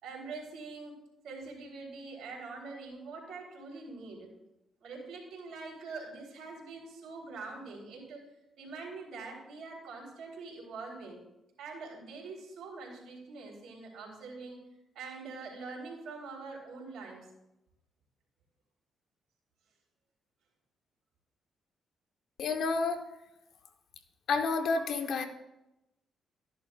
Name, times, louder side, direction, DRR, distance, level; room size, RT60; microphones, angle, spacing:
voice 1, 0.0-1.0 1.2-4.3 4.8-8.2 8.6-11.2 11.6-14.6 15.0-17.3, right 4 dB, 75° right, 0 dB, 3.6 m, -44 dB
voice 2, 22.4-23.1 24.3-25.2, left 4 dB, 70° left, 6 dB, 1.1 m, -29 dB
13.0 x 11.0 x 2.5 m, 0.92 s
supercardioid pair, 60°, 0 cm